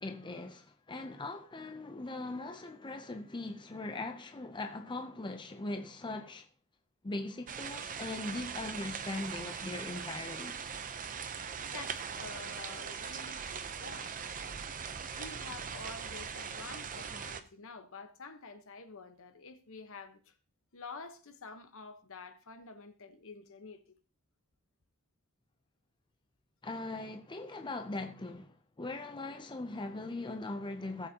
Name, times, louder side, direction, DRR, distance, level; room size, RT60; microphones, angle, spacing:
voice 1, 0.0-6.5 7.0-10.6 26.6-31.1, left 2 dB, 20° left, 0.6 m, -40 dB
sound 1, 7.5-17.4, right 6 dB, 35° right, 0.7 m, -41 dB
voice 2, 11.6-14.6 15.1-20.3 20.7-24.0, left 4 dB, 60° left, 1.1 m, -49 dB
18.0 x 7.6 x 2.9 m
head